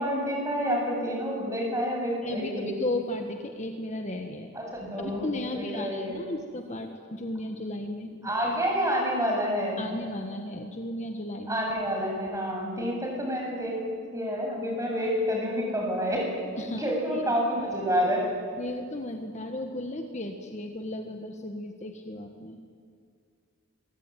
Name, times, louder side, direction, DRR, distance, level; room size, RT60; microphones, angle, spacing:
voice 1, 0.0-2.7 4.5-6.2 8.2-9.9 11.5-13.8 14.1-16.3 16.8-18.3, equal, 15° right, -1 dB, 7.6 m, -28 dB
voice 2, 2.2-4.5 5.0-8.3 9.8-11.6 16.6-17.2 18.6-22.6, left 1 dB, 30° left, 4 dB, 1.5 m, -35 dB
26.5 x 22.5 x 9.2 m, 2.2 s
head